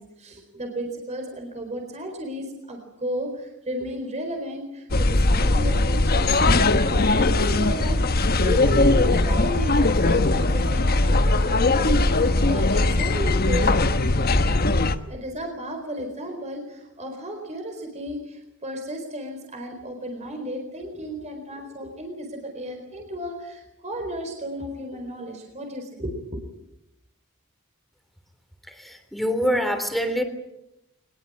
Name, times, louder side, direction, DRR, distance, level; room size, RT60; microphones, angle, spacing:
voice 1, 0.0-12.0 12.4-13.9 15.1-26.4, equal, 30° right, 3 dB, 4.3 m, -34 dB
sound 1, 4.9-15.0, left 2 dB, 45° left, 1.2 m, -20 dB
voice 2, 28.7-30.2, equal, ahead, 7 dB, 3.4 m, -25 dB
23.0 x 21.5 x 8.6 m, 0.87 s
head